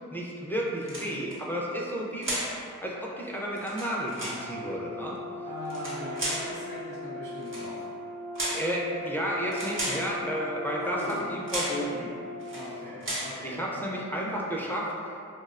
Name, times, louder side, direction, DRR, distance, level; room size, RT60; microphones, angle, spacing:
voice 1, 0.1-2.4 2.8-5.2 8.5-12.1 13.4-14.9, equal, 5° left, -4 dB, 0.3 m, -32 dB
sound 1, 0.8-1.4 2.2-2.6 3.5-4.4 5.6-6.5 7.4-7.7 8.3-8.7 9.5-10.1 11.0-11.2 11.5-11.8 12.4-12.7 13.0-13.4, right 1 dB, 40° right, 0.7 m, -33 dB
Brass instrument, 4.3-12.8, left 2 dB, 90° left, 0.5 m, -39 dB
voice 2, 5.5-7.9 10.8-11.2 12.5-13.7, equal, 85° right, -8 dB, 0.7 m, -39 dB
2.7 x 2.0 x 2.4 m, 2.5 s
cardioid pair, 45°, 31 cm